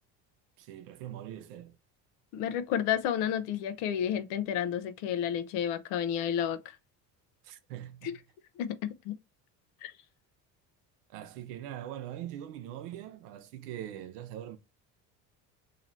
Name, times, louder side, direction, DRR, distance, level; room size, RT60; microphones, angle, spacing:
voice 1, 0.6-1.8 7.4-8.2 11.1-14.6, right 11 dB, 75° right, 0.7 m, -42 dB
voice 2, 2.3-6.6 8.0-8.2 8.6-9.1 9.8-9.9, left 9 dB, 65° left, 0.7 m, -31 dB
2.9 x 2.9 x 4.0 m
hypercardioid pair, 70°, 47 cm